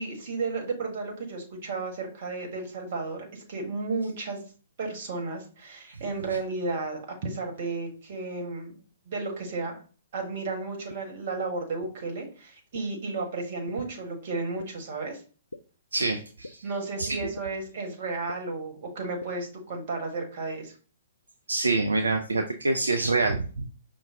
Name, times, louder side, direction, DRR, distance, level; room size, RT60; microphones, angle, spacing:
voice 1, 0.0-4.4 4.8-8.7 9.1-9.8 10.1-15.2 16.6-20.7, right 3 dB, 50° right, 3 dB, 1.4 m, -33 dB
sound 1, 10.9-11.0 11.8-11.9 12.7-12.8 13.7-13.8 14.6-14.7 15.5-15.6 16.4-16.5 17.4-17.5 18.3-18.4 19.2-19.3, left 2 dB, 85° left, 0.3 m, -39 dB
voice 2, 15.9-16.6 17.0-17.3 21.5-23.6, right 3 dB, 80° right, 5 dB, 0.4 m, -26 dB
5.5 x 2.3 x 3.6 m, 0.39 s
figure-of-eight pair, 115°, 0 cm